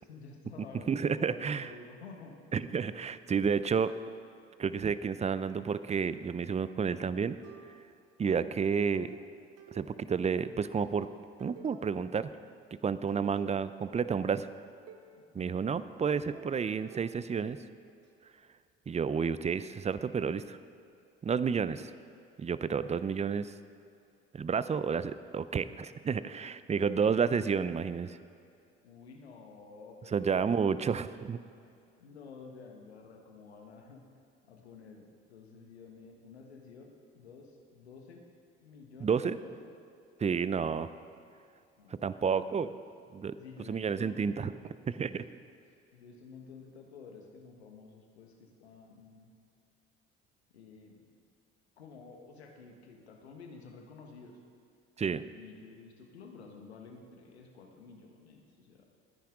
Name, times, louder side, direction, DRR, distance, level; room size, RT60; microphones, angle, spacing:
voice 1, 0.0-2.4 15.1-15.5 28.8-30.2 31.6-34.0 34.5-38.2 38.6-39.7 41.8-42.6 43.3-44.5 45.1-45.2 45.7-49.3 50.5-51.2 51.8-54.4 55.3-58.9, left 4 dB, 90° left, 2 dB, 1.4 m, -51 dB
voice 2, 0.9-1.7 2.5-3.9 4.6-7.4 8.2-9.1 9.7-11.1 11.4-12.3 12.8-14.5 15.3-17.6 18.9-20.6 21.2-21.9 22.4-23.5 24.3-28.2 30.1-31.4 39.0-39.4 40.2-40.9 41.9-42.7 43.1-43.4 43.7-44.5 45.0-45.2 55.0-55.2, right 6 dB, 20° right, 14 dB, 0.6 m, -30 dB
sound 1, 7.4-8.2 8.9-10.6 11.0-12.2 12.7-15.2 16.3-18.1, right 7 dB, 50° right, 1.1 m, -54 dB
20.0 x 10.0 x 3.7 m, 2.5 s
hypercardioid pair, 60°, 31 cm